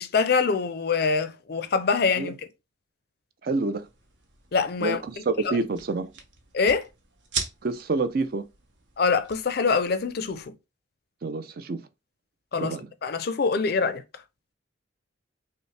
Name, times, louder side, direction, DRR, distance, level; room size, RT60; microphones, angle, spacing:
voice 1, 0.0-2.4 4.5-5.0 5.5-5.6 6.5-6.9 9.0-10.4 12.5-12.8 13.0-14.0, left 5 dB, 55° left, 0.5 m, -24 dB
voice 2, 3.4-3.9 4.8-6.1 7.6-8.5 11.2-11.9 12.6-12.9, right 3 dB, 50° right, 0.4 m, -28 dB
sound 1, 3.7-10.4, right 6 dB, 70° right, 1.0 m, -40 dB
5.4 x 2.1 x 3.2 m
head